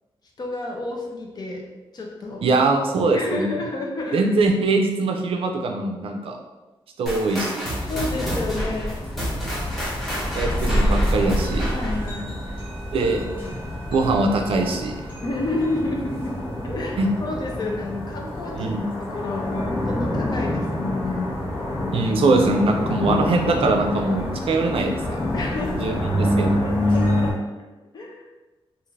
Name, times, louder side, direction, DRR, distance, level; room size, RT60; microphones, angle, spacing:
voice 1, 0.4-1.7 1.9-2.5 3.1-4.2 7.9-9.1 11.7-12.5 15.2-16.4 16.6-21.3 25.3-27.4 27.9-28.2, left 2 dB, 45° left, -1 dB, 0.5 m, -30 dB
voice 2, 2.4-3.6 4.1-6.4 7.0-7.7 10.3-11.7 12.9-13.3 13.9-15.0 17.0-17.1 18.6-18.8 21.9-25.2 25.8-26.6, right 3 dB, 70° right, 3 dB, 0.4 m, -22 dB
sound 1, 7.1-12.1, equal, ahead, 0.8 m, -29 dB
sound 2, 7.7-27.3, left 1 dB, 65° left, 0.9 m, -27 dB
2.5 x 2.4 x 3.1 m, 1.1 s
wide cardioid pair, 160°, 10 cm